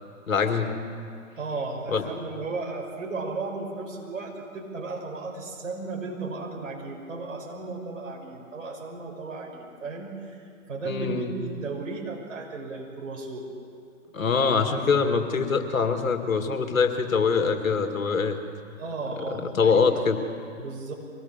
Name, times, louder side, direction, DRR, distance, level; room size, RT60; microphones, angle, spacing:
voice 1, 0.3-0.7 1.9-2.0 10.8-11.3 14.1-18.4 19.2-20.2, left 5 dB, 75° left, 6 dB, 2.2 m, -24 dB
voice 2, 1.4-10.4 10.7-13.4 18.8-19.8 20.6-20.9, right 3 dB, 65° right, 1 dB, 5.6 m, -35 dB
24.0 x 19.0 x 7.3 m, 2.4 s
figure-of-eight pair, 125°, 40 cm